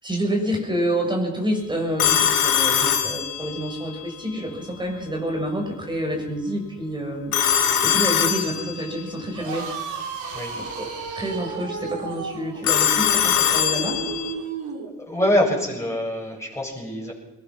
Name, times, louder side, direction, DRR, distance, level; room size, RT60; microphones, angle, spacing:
voice 1, 0.0-9.7 10.5-10.9 11.1-14.0, equal, 15° right, 1 dB, 6.4 m, -28 dB
Telephone, 2.0-3.8 7.3-9.0 12.6-14.3, left 9 dB, 85° left, 3.5 m, -21 dB
sound 1, 9.3-14.9, right 5 dB, 80° right, 4.7 m, -33 dB
voice 2, 15.0-17.1, left 1 dB, 10° left, -3 dB, 7.8 m, -24 dB
21.5 x 20.5 x 6.2 m, 1.1 s
cardioid pair, 90°, 30 cm